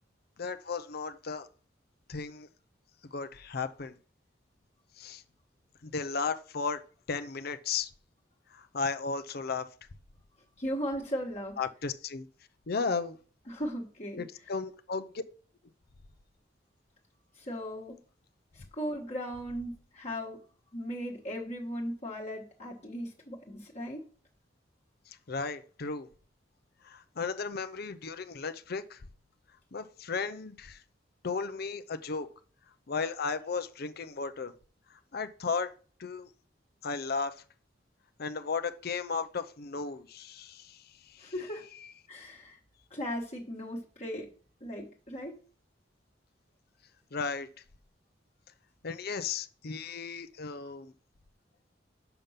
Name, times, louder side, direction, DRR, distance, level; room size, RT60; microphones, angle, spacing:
voice 1, 0.4-1.5 2.1-2.5 3.1-4.0 5.0-5.2 5.8-6.8 7.1-7.9 8.5-9.7 11.6-12.3 12.7-13.2 14.2-15.1 25.3-26.1 26.8-29.0 29.7-30.8 31.2-32.3 32.9-34.5 35.1-35.7 36.0-36.3 36.8-37.4 38.2-41.3 47.1-47.5 48.8-50.9, left 5 dB, 55° left, 0.6 m, -35 dB
voice 2, 10.6-11.6 13.5-14.2 17.3-18.0 18.5-20.4 20.7-24.1 41.2-41.6 42.1-42.6 42.9-44.3 44.6-45.3, equal, 40° left, 1.4 m, -37 dB
6.8 x 5.3 x 5.8 m
head